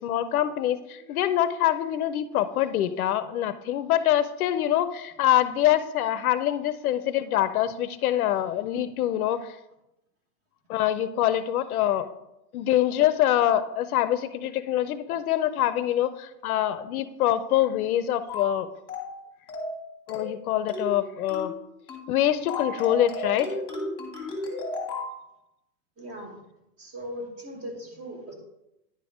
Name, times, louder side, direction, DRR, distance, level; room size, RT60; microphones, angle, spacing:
voice 1, 0.0-9.6 10.7-12.1 12.5-18.7 20.1-21.5 22.1-23.5, left 12 dB, 60° left, 12 dB, 0.6 m, -25 dB
sound 1, 18.3-18.6 18.9-19.2 19.5-19.8 20.1-20.4 20.7-21.0 21.3-21.6 21.9-22.1 22.5-25.1, left 2 dB, 10° left, 1.3 m, -33 dB
voice 2, 26.0-26.4 26.8-28.3, equal, 30° right, 2 dB, 1.7 m, -39 dB
10.0 x 3.5 x 4.9 m, 0.90 s
hypercardioid pair, 150°, 49 cm